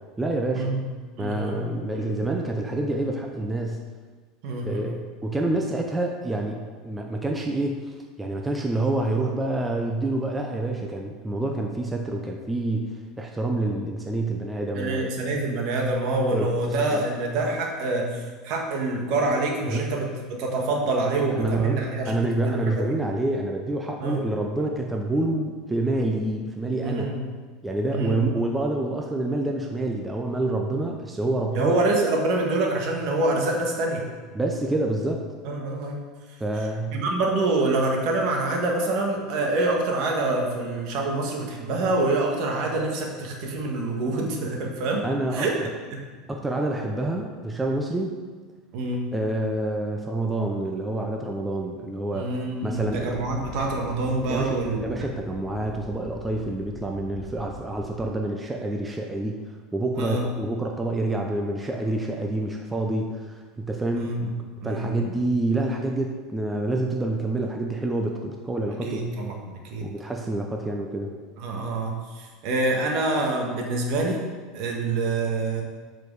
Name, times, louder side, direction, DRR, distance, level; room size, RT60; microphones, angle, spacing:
voice 1, 0.2-0.7 1.2-3.8 4.7-12.9 13.2-15.1 16.3-16.5 16.8-17.0 19.7-19.8 21.1-27.1 27.6-31.8 34.3-35.2 36.4-37.0 45.0-45.7 46.3-48.2 49.1-52.4 52.6-53.2 54.3-54.6 54.8-59.4 59.7-64.1 64.6-69.0 69.8-71.1, right 2 dB, 10° right, 1 dB, 0.7 m, -27 dB
voice 2, 1.2-1.7 1.9-2.1 4.4-4.9 14.7-22.9 24.0-24.2 26.8-27.2 27.9-28.4 31.5-34.1 35.4-36.0 36.9-45.0 45.3-45.6 45.9-46.0 48.7-49.1 52.1-55.0 60.0-60.3 63.9-64.3 64.6-65.1 68.8-69.9 71.4-74.2 74.5-75.6, right 2 dB, 60° right, 1 dB, 1.6 m, -26 dB
sound 1, 52.7-58.0, right 1 dB, 35° right, 1.7 m, -42 dB
7.4 x 4.9 x 4.8 m, 1.5 s
supercardioid pair, 125°, 0 cm